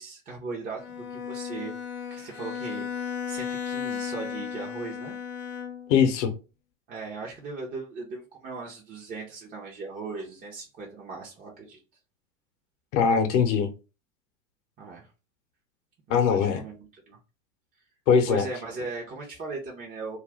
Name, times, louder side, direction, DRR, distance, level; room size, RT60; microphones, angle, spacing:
voice 1, 0.0-1.7 2.1-5.1 6.9-11.8 14.8-15.1 16.1-17.2 18.3-20.2, right 3 dB, 20° right, 0.6 m, -38 dB
Bowed string instrument, 0.8-6.1, left 7 dB, 30° left, 0.4 m, -35 dB
voice 2, 5.9-6.3 12.9-13.7 16.1-16.6 18.1-18.4, left 6 dB, 60° left, 0.8 m, -21 dB
2.4 x 2.1 x 3.3 m
hypercardioid pair, 105°, 41 cm